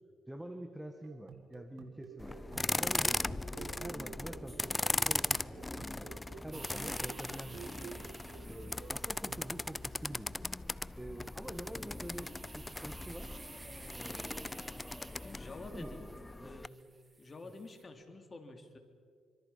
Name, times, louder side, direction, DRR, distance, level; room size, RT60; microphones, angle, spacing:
voice 1, 0.3-2.4 2.7-6.1 6.4-7.9 8.5-10.5 11.0-13.3 14.0-14.8 15.7-15.9 16.4-16.5 17.4-17.5, right 1 dB, 5° right, 6 dB, 1.9 m, -46 dB
sound 1, 1.0-9.5, right 6 dB, 80° right, 1.8 m, -52 dB
sound 2, 2.2-16.7, left 2 dB, 15° left, 0.5 m, -38 dB
sound 3, 6.5-17.8, right 2 dB, 25° right, 3.8 m, -53 dB
voice 2, 15.2-16.1 16.4-16.8 17.2-18.8, left 3 dB, 30° left, 5 dB, 3.3 m, -49 dB
26.5 x 25.0 x 5.9 m, 2.1 s
cardioid pair, 90°, 0 cm